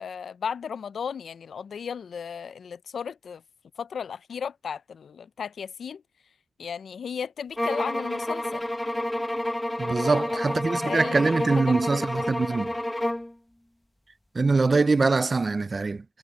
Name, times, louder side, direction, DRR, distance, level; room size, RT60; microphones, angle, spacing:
voice 1, 0.0-3.4 3.8-6.0 6.6-8.6 10.0-12.2, left 7 dB, 65° left, 0.4 m, -35 dB
sound 1, 7.6-13.3, left 1 dB, 10° left, 1.1 m, -29 dB
voice 2, 9.8-12.7 14.3-16.0, right 3 dB, 30° right, 0.3 m, -23 dB
wide cardioid pair, 130°, 0 cm